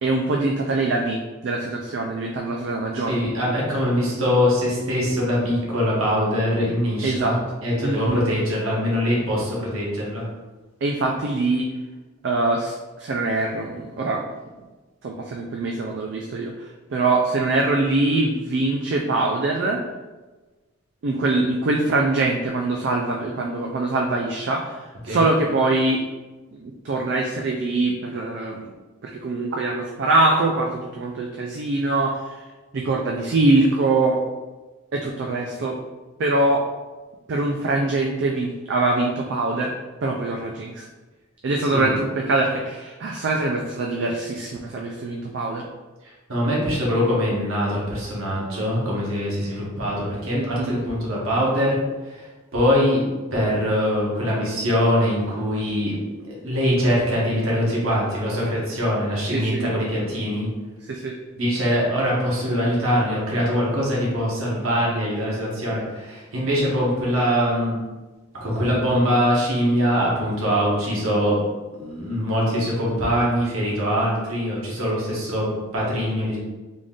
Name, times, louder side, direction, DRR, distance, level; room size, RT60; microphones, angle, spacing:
voice 1, 0.0-3.2 7.0-7.4 7.8-8.2 10.8-11.7 12.2-14.2 15.0-19.8 21.0-26.0 26.5-28.7 29.0-32.5 32.7-34.2 34.9-35.8 36.2-36.6 37.3-39.7 40.0-40.9 41.4-45.7 50.3-50.8 59.3-59.7 60.9-61.1, right 2 dB, 55° right, 1 dB, 0.4 m, -23 dB
voice 2, 3.1-10.2 25.0-25.3 41.8-41.9 46.0-51.8 52.0-52.3 52.5-53.0 53.3-56.0 56.2-60.5 61.4-67.8 68.3-71.4 71.7-76.4, equal, 85° right, -5 dB, 1.1 m, -23 dB
3.8 x 2.4 x 3.6 m, 1.2 s
head